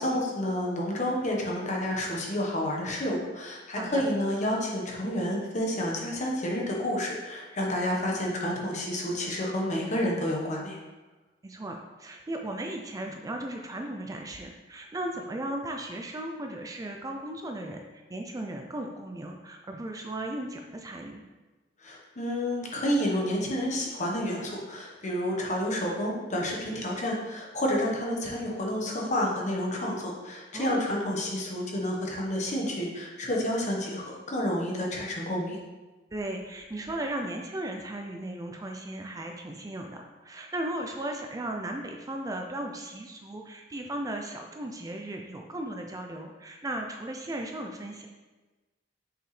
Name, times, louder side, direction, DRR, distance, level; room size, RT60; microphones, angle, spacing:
voice 1, 0.0-10.8 21.8-35.6, left 1 dB, 40° left, -2 dB, 1.2 m, -30 dB
voice 2, 3.7-4.0 11.4-21.2 30.5-30.9 36.1-48.1, right 1 dB, 20° right, 3 dB, 0.4 m, -36 dB
6.3 x 4.8 x 3.2 m, 1.2 s
head